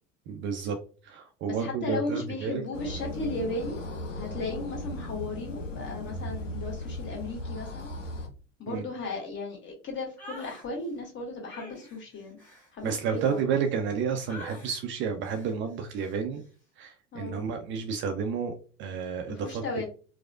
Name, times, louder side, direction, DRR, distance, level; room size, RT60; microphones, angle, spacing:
voice 1, 0.3-2.6 8.7-8.8 12.8-16.4 16.8-18.5 18.8-19.6, right 6 dB, 35° right, 5 dB, 0.5 m, -31 dB
voice 2, 1.5-3.8 4.1-7.9 8.6-12.4 12.7-13.5 17.1-17.4 19.3-19.9, left 2 dB, 30° left, 0 dB, 1.4 m, -35 dB
sound 1, 2.7-8.3, left 1 dB, 85° left, 0.6 m, -37 dB
sound 2, 10.2-10.7 11.5-13.9 14.3-14.8 15.2-15.6 16.0-16.2, equal, 5° left, 1.6 m, -46 dB
4.6 x 2.0 x 2.4 m, 0.37 s
figure-of-eight pair, 75°, 36 cm